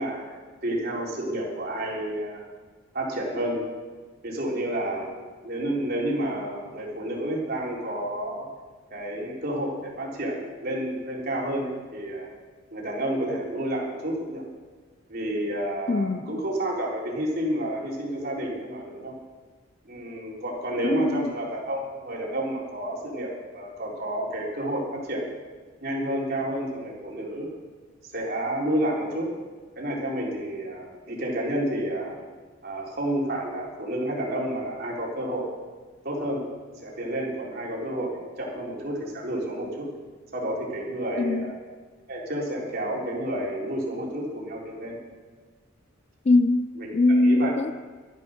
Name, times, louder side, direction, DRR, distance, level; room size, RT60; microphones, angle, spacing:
voice 1, 0.0-2.4 2.9-3.6 4.2-5.2 5.4-8.5 8.9-12.3 12.7-14.4 15.1-19.1 19.9-25.3 25.8-27.5 28.1-29.3 29.8-32.1 32.6-35.5 36.0-36.4 36.8-39.9 40.3-41.6 42.1-45.0 46.8-47.5, right 1 dB, 50° right, 3.8 m, -30 dB
voice 2, 15.9-16.4 20.8-21.3 41.2-41.5 46.3-47.7, left 2 dB, 35° left, 0.4 m, -22 dB
13.0 x 11.0 x 6.5 m
head